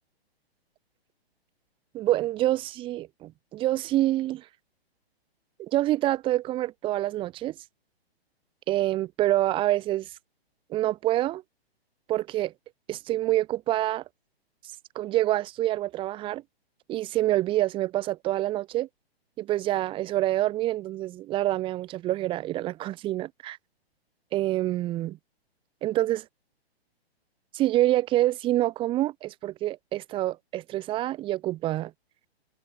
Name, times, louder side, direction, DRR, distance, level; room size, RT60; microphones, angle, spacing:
voice 1, 1.9-4.4 5.6-7.5 8.7-10.1 10.7-11.4 12.1-12.5 12.9-14.0 14.9-16.4 16.9-18.9 19.4-23.6 24.3-25.2 25.8-26.2 27.5-31.9, right 15 dB, 15° right, 0.8 m, -26 dB
hypercardioid pair, 135°, 32 cm